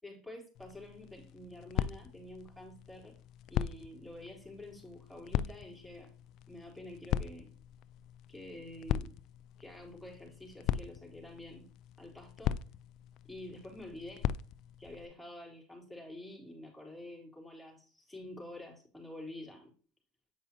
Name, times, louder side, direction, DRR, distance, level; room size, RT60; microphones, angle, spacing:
voice 1, 0.0-3.2 3.5-6.1 6.5-7.6 8.3-9.1 9.6-11.7 12.0-12.6 13.3-14.3 14.8-19.7, left 1 dB, ahead, -2 dB, 3.6 m, -48 dB
sound 1, 0.5-15.1, left 11 dB, 55° left, 0.4 m, -39 dB
9.1 x 5.2 x 3.0 m, 0.40 s
hypercardioid pair, 90°, 0 cm